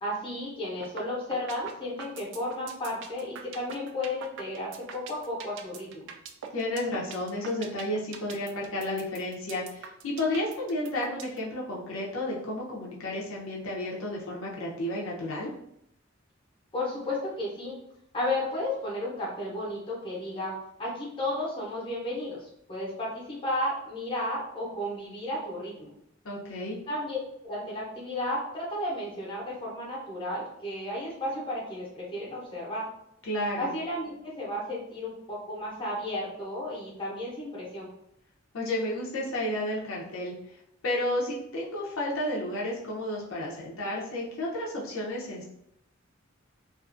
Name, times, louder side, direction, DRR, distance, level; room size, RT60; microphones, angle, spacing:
voice 1, 0.0-6.1 16.7-17.8 18.1-25.9 26.9-32.9 33.6-37.9, left 1 dB, 25° left, -5 dB, 0.8 m, -33 dB
sound 1, 0.8-1.0 1.3-11.4, right 7 dB, 60° right, 0.3 m, -41 dB
voice 2, 6.5-15.5 26.2-26.8 33.2-33.7 38.5-40.3 40.8-45.5, left 1 dB, 85° left, -3 dB, 0.6 m, -32 dB
2.5 x 2.4 x 2.5 m, 0.76 s
head